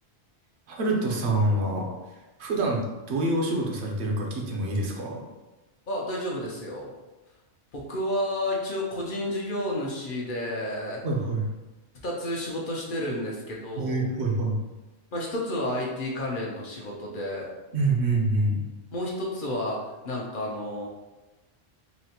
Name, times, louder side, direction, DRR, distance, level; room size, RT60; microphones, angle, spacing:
voice 1, 0.7-1.9 2.4-5.2 11.0-11.5 13.8-14.6 17.7-18.7, right 2 dB, 80° right, 0 dB, 0.9 m, -26 dB
voice 2, 5.9-6.9 7.7-11.0 12.0-14.1 15.1-17.5 18.9-20.9, left 1 dB, 55° left, -3 dB, 0.7 m, -31 dB
4.0 x 2.1 x 2.8 m, 1.1 s
omnidirectional pair, 1.1 m